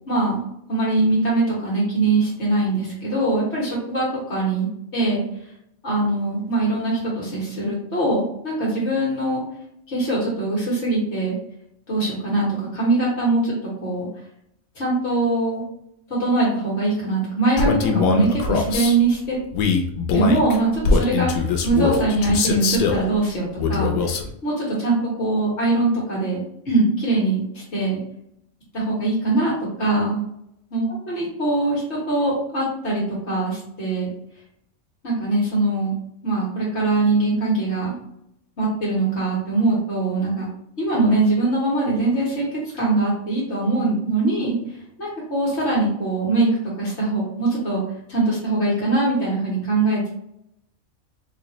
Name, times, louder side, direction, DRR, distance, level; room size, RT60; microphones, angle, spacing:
voice 1, 0.1-0.4 0.7-4.7 4.9-5.2 5.8-9.4 9.9-11.3 11.9-13.5 13.8-14.0 14.7-15.6 16.1-19.4 20.1-23.9 24.4-28.0 28.7-30.2 30.7-34.1 35.0-35.9 36.2-38.0 38.6-40.5 40.8-44.6 45.0-47.8 48.1-50.1, right 2 dB, 55° left, -5 dB, 1.5 m, -22 dB
Male speech man speaking, 17.6-19.0 19.5-23.0 23.6-24.3, left 5 dB, 80° left, 1.0 m, -21 dB
4.0 x 2.5 x 3.0 m, 0.76 s
omnidirectional pair, 1.5 m